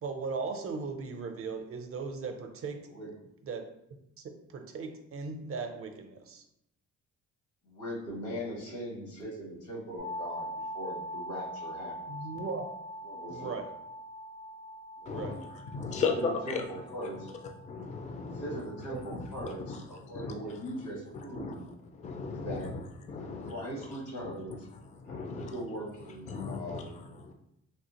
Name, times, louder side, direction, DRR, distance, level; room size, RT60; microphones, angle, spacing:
voice 1, 0.0-2.8 3.4-3.6 4.2-6.4 12.1-12.6 13.3-13.7 15.1-15.4 18.9-19.0, right 4 dB, 50° right, 6 dB, 0.5 m, -38 dB
voice 2, 7.6-10.5 10.7-12.0 13.0-13.6 15.0-15.2 15.8-17.3 18.2-21.6 22.2-22.7 23.0-24.7 25.0-27.0, right 1 dB, 85° left, -2 dB, 1.3 m, -40 dB
sound 1, 10.0-19.7, equal, 70° left, 0.8 m, -43 dB
voice 3, 15.1-15.4 15.7-16.6 17.0-17.1 17.6-18.6 19.1-20.4 21.3-21.5 21.9-22.8 23.1-23.5 23.8-23.9 24.2-25.5 26.3-27.3, left 4 dB, 25° left, 4 dB, 0.4 m, -36 dB
3.4 x 2.4 x 2.8 m, 0.78 s
cardioid pair, 90°, 30 cm